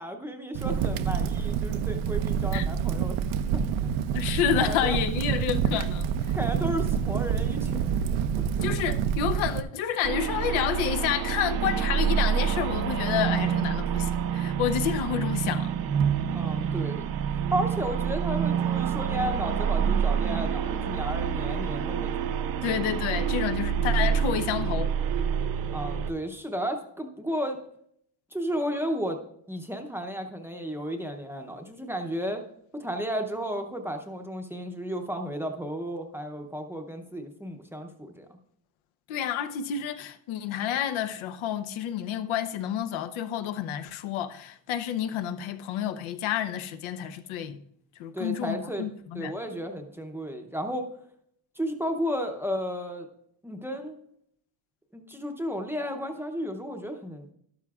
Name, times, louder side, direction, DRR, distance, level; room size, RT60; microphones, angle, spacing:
voice 1, 0.0-3.2 3.5-3.9 4.6-5.0 6.3-7.8 16.3-17.1 17.5-22.1 25.7-27.6 28.3-29.2 29.5-32.4 32.7-38.4 48.1-48.9 49.1-50.9 51.6-53.1 53.4-54.0 54.9-57.3, equal, 5° right, 0.6 m, -33 dB
Crackle, 0.6-9.6, right 8 dB, 85° right, 0.7 m, -27 dB
voice 2, 4.1-6.1 8.6-15.7 22.6-24.9 39.1-47.6 48.0-49.3, left 9 dB, 90° left, 0.8 m, -29 dB
sound 1, 10.0-26.1, right 8 dB, 50° right, 0.6 m, -27 dB
12.5 x 12.0 x 2.4 m
cardioid pair, 165°, 47 cm